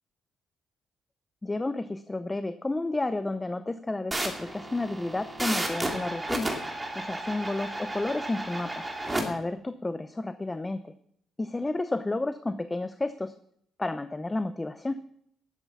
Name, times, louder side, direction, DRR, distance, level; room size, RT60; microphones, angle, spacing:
voice 1, 1.4-6.5 7.0-8.8 9.2-10.9 11.4-13.4 13.8-15.0, left 2 dB, 20° left, 12 dB, 0.6 m, -31 dB
sound 1, 4.1-9.2, right 1 dB, 15° right, 2.7 m, -33 dB
11.5 x 7.9 x 7.1 m, 0.69 s
cardioid pair, 90°, 0 cm